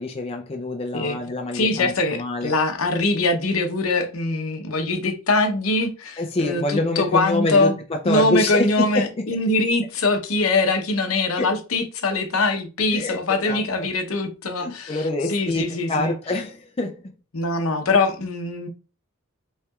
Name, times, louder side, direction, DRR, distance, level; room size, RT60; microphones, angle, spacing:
voice 1, 0.0-2.5 6.2-9.1 11.4-11.5 12.9-13.2 13.4-13.9 14.6-17.0, left 2 dB, 25° left, 0.5 m, -26 dB
voice 2, 1.5-7.8 8.0-16.1 17.3-18.7, left 2 dB, 70° left, 0.9 m, -23 dB
5.6 x 3.3 x 2.4 m
head